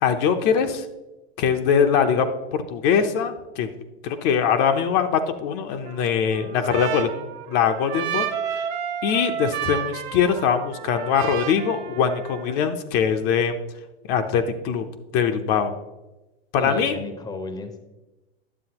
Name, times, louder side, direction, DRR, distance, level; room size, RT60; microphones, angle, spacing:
voice 1, 0.0-0.9 1.4-3.7 4.0-7.1 7.5-8.2 8.5-8.7 9.0-13.6 14.1-14.9 15.1-15.7 16.5-16.9, left 7 dB, 50° left, 6 dB, 0.7 m, -22 dB
Trumpet, 5.8-12.6, right 9 dB, 55° right, 1.1 m, -31 dB
voice 2, 16.6-17.8, left 2 dB, 10° left, 8 dB, 0.7 m, -33 dB
9.7 x 7.1 x 2.9 m, 1.1 s
hypercardioid pair, 115°, 31 cm